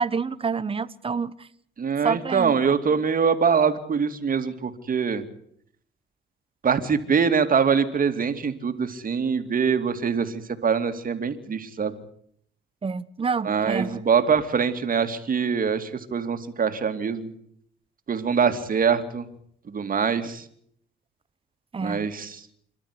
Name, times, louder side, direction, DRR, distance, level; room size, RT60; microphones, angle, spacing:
voice 1, 0.0-1.5 2.0-2.5 12.8-14.0 21.7-22.0, right 5 dB, 30° right, 1.1 m, -27 dB
voice 2, 1.8-5.2 6.6-11.9 13.4-17.3 18.1-19.3 19.7-20.4 21.8-22.4, right 6 dB, 45° right, 2.8 m, -24 dB
27.5 x 12.5 x 10.0 m
cardioid pair, 90°, 20 cm